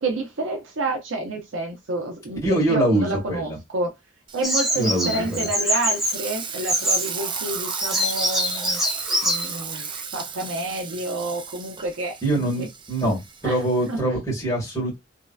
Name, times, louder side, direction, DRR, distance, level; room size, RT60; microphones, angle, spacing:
voice 1, 0.0-3.9 4.3-8.8 9.2-12.5 13.4-13.6 13.9-14.0, right 2 dB, 90° right, 0.7 m, -29 dB
voice 2, 2.4-3.6 4.8-5.5 12.2-13.2 13.4-15.0, right 1 dB, 15° left, 1.8 m, -23 dB
Frying (food), 4.3-14.0, right 6 dB, 25° right, 0.4 m, -35 dB
Bird vocalization bird call bird song, 4.4-10.0, equal, ahead, 0.8 m, -26 dB
3.1 x 2.7 x 2.3 m
head